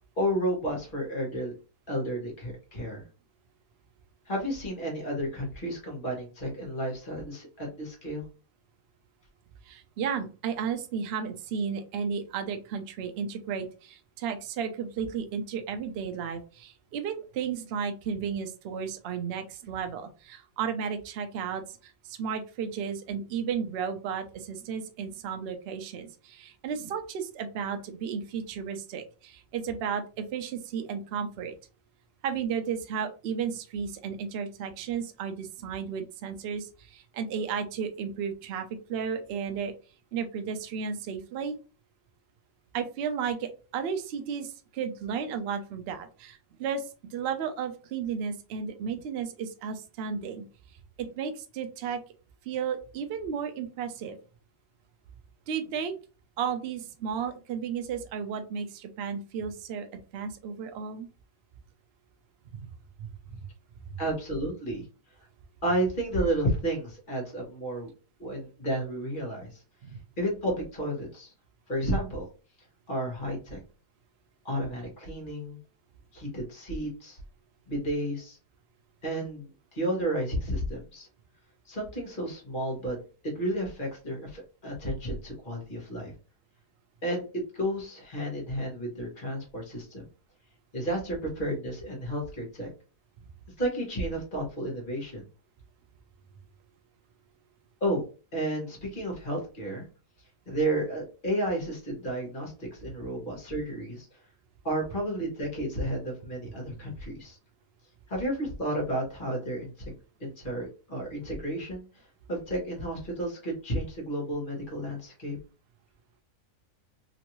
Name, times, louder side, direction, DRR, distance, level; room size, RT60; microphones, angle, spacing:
voice 1, 0.2-1.5 1.9-3.0 4.3-8.2 64.0-64.9 65.6-67.9 68.2-69.6 70.2-71.3 71.7-72.3 72.9-73.6 74.4-75.6 76.1-77.2 77.7-78.4 79.0-81.1 81.7-83.0 83.2-86.1 87.0-90.0 90.7-92.7 93.6-95.2 97.8-98.0 98.3-99.9 100.5-104.1 104.6-107.4 108.1-112.0 112.3-115.4, right 1 dB, 35° left, 0 dB, 1.3 m, -32 dB
voice 2, 9.7-31.6 32.2-39.7 40.1-41.6 42.7-50.5 51.0-52.0 52.5-54.2 55.5-55.9 56.4-61.1 62.5-62.7 63.0-63.4 63.9-64.0 69.8-70.0, right 7 dB, 70° right, 7 dB, 0.6 m, -33 dB
3.0 x 2.6 x 2.9 m, 0.34 s
omnidirectional pair, 1.7 m